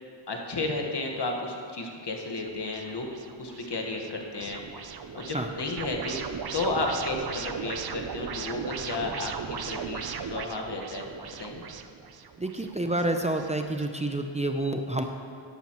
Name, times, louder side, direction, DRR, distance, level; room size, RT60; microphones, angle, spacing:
voice 1, 0.3-3.0 3.4-4.6 5.1-6.1 6.5-11.1 11.4-11.6, left 2 dB, 60° left, 1 dB, 1.5 m, -32 dB
sound 1, 2.4-13.9, right 6 dB, 55° right, 0.7 m, -38 dB
voice 2, 12.4-15.0, right 1 dB, 15° right, 4 dB, 0.6 m, -28 dB
11.5 x 11.5 x 3.1 m, 2.3 s
cardioid pair, 55°, 45 cm